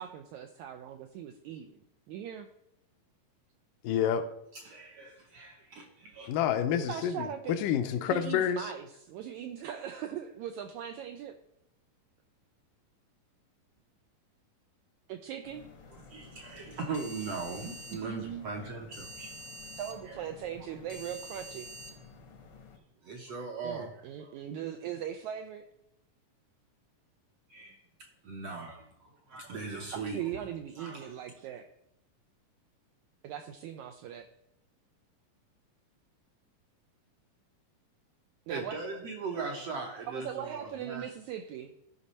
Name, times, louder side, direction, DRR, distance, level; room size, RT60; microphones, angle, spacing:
voice 1, 0.0-1.8 2.1-2.5 6.7-7.6 8.1-11.3 15.1-15.6 18.0-18.5 19.8-21.7 23.6-25.6 30.1-31.7 33.2-34.3 38.5-38.8 40.1-41.7, right 10 dB, 90° right, 6 dB, 1.7 m, -40 dB
voice 2, 3.8-4.2 6.3-8.6, left 9 dB, 80° left, 8 dB, 2.2 m, -28 dB
voice 3, 4.5-6.3 16.1-19.3 20.0-20.2 23.0-24.4 27.5-27.8 28.2-30.2 30.8-31.1 38.5-41.1, right 4 dB, 70° right, 1 dB, 1.5 m, -39 dB
sound 1, 15.4-22.8, left 1 dB, 65° left, 1.2 m, -48 dB
13.0 x 5.3 x 4.2 m, 0.80 s
omnidirectional pair, 3.9 m